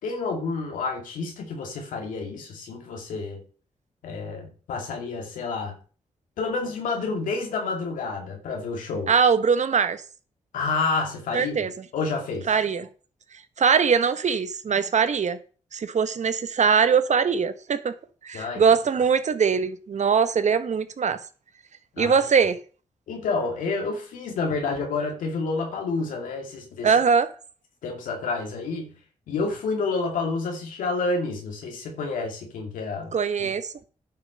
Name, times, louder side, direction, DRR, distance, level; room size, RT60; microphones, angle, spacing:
voice 1, 0.0-3.4 4.0-5.8 6.4-9.1 10.5-11.6 11.9-12.5 18.3-18.6 21.9-22.2 23.1-26.9 27.8-29.0 29.3-33.1 33.4-33.5, left 4 dB, 85° left, 2.6 m, -29 dB
voice 2, 9.1-10.0 11.3-11.7 12.5-12.9 13.6-15.4 15.7-17.9 18.2-21.2 22.0-22.6 26.8-27.3 33.1-33.7, right 6 dB, 60° right, 1.3 m, -21 dB
10.5 x 6.2 x 6.7 m
supercardioid pair, 45°, 13 cm